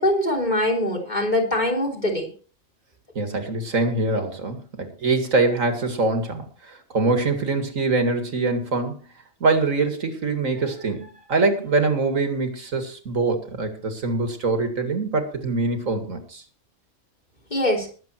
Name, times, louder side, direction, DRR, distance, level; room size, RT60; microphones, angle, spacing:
voice 1, 0.0-2.3 17.5-17.9, left 1 dB, 35° left, -1 dB, 3.8 m, -22 dB
voice 2, 3.2-9.0 9.4-16.4, right 3 dB, 80° right, 6 dB, 2.5 m, -24 dB
20.5 x 7.7 x 4.5 m, 0.40 s
omnidirectional pair, 1.4 m